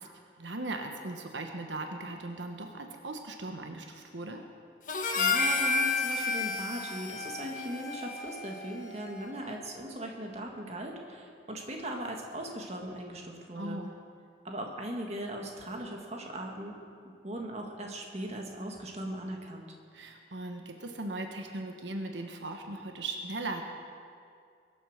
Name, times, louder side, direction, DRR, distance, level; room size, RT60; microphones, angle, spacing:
voice 1, 0.4-4.4 13.5-13.9 19.9-23.6, right 2 dB, 80° right, 4 dB, 1.2 m, -38 dB
Harmonica, 4.9-9.4, left 3 dB, 45° left, 1.2 m, -31 dB
voice 2, 5.1-13.8 14.4-16.8 17.2-19.8, right 1 dB, 35° right, 1 dB, 1.7 m, -39 dB
22.0 x 8.2 x 6.5 m, 2.3 s
head